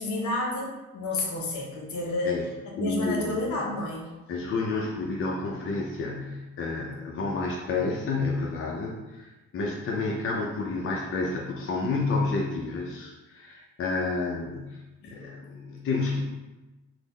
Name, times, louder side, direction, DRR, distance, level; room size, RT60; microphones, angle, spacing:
voice 1, 0.0-4.1 15.0-15.1, left 2 dB, 70° left, -1 dB, 0.9 m, -30 dB
voice 2, 2.8-3.5 4.3-16.2, left 3 dB, 45° left, -2 dB, 0.5 m, -30 dB
3.7 x 2.1 x 3.1 m, 1.1 s
cardioid pair, 90°, 30 cm